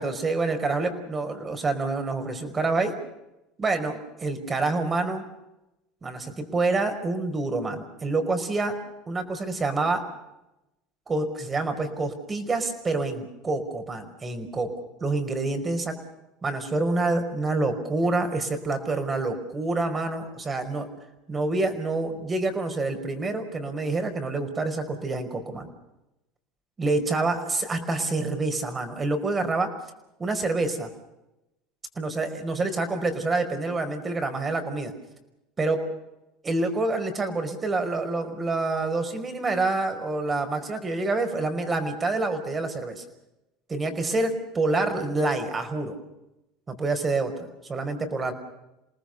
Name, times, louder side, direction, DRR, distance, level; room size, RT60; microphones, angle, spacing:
voice 1, 0.0-2.9 3.6-5.2 6.0-8.7 9.1-10.0 11.1-14.7 15.0-15.9 16.4-20.9 21.3-25.7 26.8-29.7 30.2-30.9 31.9-34.9 35.6-35.8 36.4-43.0 43.7-46.0 46.7-48.3, right 3 dB, 25° right, 7 dB, 5.1 m, -27 dB
28.0 x 19.5 x 6.7 m, 0.92 s
hypercardioid pair, 85°, 0 cm